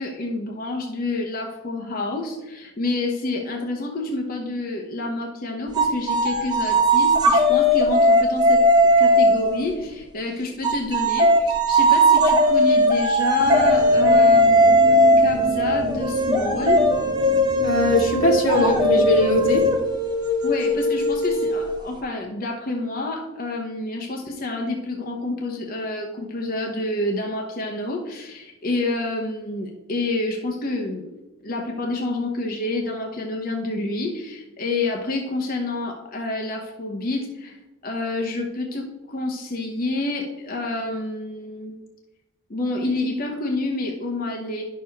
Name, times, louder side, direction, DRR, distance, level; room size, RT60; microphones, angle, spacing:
voice 1, 0.0-14.8 15.2-16.9 20.4-41.7 42.5-44.6, left 2 dB, 45° left, 1 dB, 0.9 m, -28 dB
sound 1, 5.7-9.7 10.6-21.9, equal, 20° right, 1.1 m, -18 dB
sound 2, 13.4-19.8, right 2 dB, 45° right, 1.1 m, -32 dB
voice 2, 17.6-19.7, left 2 dB, 85° left, -2 dB, 2.2 m, -20 dB
10.5 x 6.5 x 3.4 m, 1.1 s
head